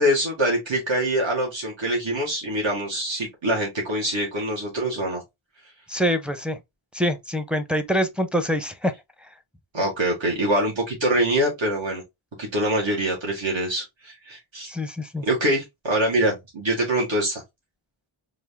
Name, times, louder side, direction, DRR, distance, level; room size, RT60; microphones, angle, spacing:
voice 1, 0.0-5.2 9.7-12.0 12.4-14.7 15.2-17.4, right 1 dB, 65° right, 1.6 m, -24 dB
voice 2, 5.9-6.6 6.9-8.9 14.7-15.3, equal, ahead, 0.6 m, -25 dB
3.8 x 2.6 x 3.3 m
wide cardioid pair, 55°, 49 cm